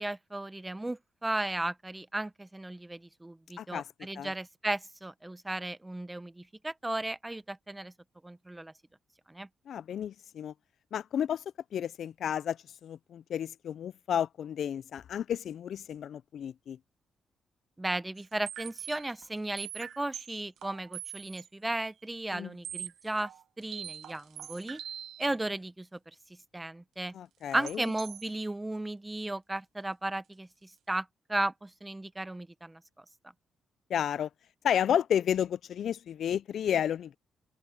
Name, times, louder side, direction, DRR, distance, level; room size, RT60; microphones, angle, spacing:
voice 1, 0.0-7.9 8.2-8.7 9.3-9.5 17.8-23.3 23.6-24.8 25.2-26.0 26.5-27.1 27.5-33.0, right 2 dB, 10° right, 0.7 m, -35 dB
voice 2, 9.7-10.5 10.9-11.4 11.7-16.8 22.3-22.5 27.1-27.8 33.9-34.3 34.6-37.1, left 9 dB, 65° left, 0.3 m, -32 dB
sound 1, 18.2-21.5 21.8-21.9 22.3-22.4 22.6-25.3 27.5-28.3, right 9 dB, 75° right, 1.1 m, -43 dB
cardioid pair, 105°, 0 cm